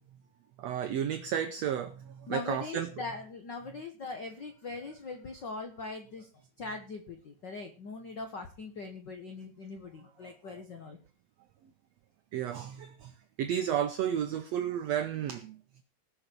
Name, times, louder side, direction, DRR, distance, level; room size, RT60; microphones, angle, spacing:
voice 1, 0.6-3.0 12.3-13.1 13.4-15.6, right 9 dB, 85° right, 9 dB, 1.5 m, -32 dB
voice 2, 2.3-6.3 6.6-11.0, left 3 dB, 70° left, 5 dB, 1.0 m, -41 dB
19.5 x 6.7 x 4.5 m, 0.34 s
omnidirectional pair, 4.0 m